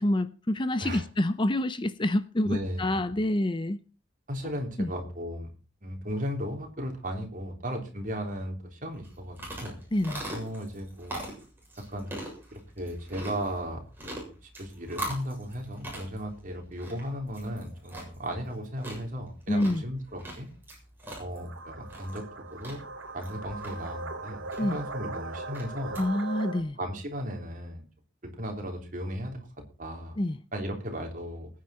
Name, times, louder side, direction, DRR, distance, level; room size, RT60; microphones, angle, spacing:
voice 1, 0.0-3.8 4.8-4.9 9.9-10.2 19.5-19.8 24.6-24.8 26.0-26.8 30.2-30.4, left 1 dB, 25° left, 0.6 m, -27 dB
voice 2, 2.4-2.8 4.3-5.5 5.8-9.8 10.3-11.2 11.9-12.1 12.5-14.1 14.4-20.5 21.2-22.2 22.5-22.8 23.1-26.0 26.8-27.8 28.2-29.5 29.8-30.2 30.5-31.5, equal, 40° right, 3.6 m, -36 dB
sound 1, 8.9-26.0, right 1 dB, 10° right, 6.9 m, -42 dB
sound 2, 21.4-26.6, right 3 dB, 85° right, 2.3 m, -39 dB
21.0 x 9.5 x 4.3 m
head